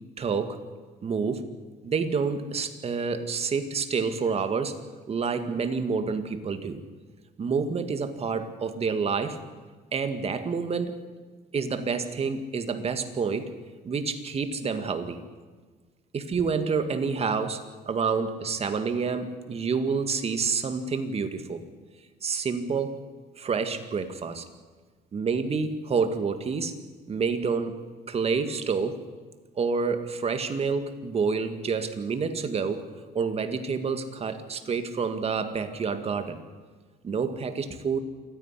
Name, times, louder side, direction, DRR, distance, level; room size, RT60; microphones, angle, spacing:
voice 1, 0.2-0.6 1.0-1.5 1.8-4.8 5.1-6.8 7.4-9.4 9.9-11.0 11.5-13.5 13.9-15.2 16.1-21.6 22.2-23.0 23.4-24.4 25.1-26.7 27.1-27.8 28.1-29.0 29.6-32.9 33.1-36.4 37.0-38.0, right 5 dB, 35° right, 8 dB, 2.1 m, -28 dB
27.5 x 10.5 x 9.9 m, 1.4 s
cardioid pair, 110°, 17 cm